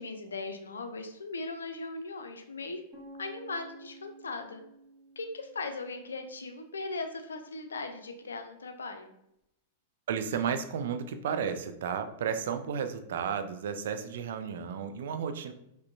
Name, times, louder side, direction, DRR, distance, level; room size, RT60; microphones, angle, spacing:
voice 1, 0.0-2.8 3.2-4.6 5.2-9.1, left 3 dB, 75° left, 5 dB, 0.4 m, -38 dB
sound 1, 2.9-6.8, right 2 dB, 20° right, 1.4 m, -53 dB
voice 2, 10.1-15.5, right 7 dB, 60° right, 9 dB, 0.3 m, -33 dB
5.0 x 2.1 x 2.5 m, 0.81 s
figure-of-eight pair, 95°, 0 cm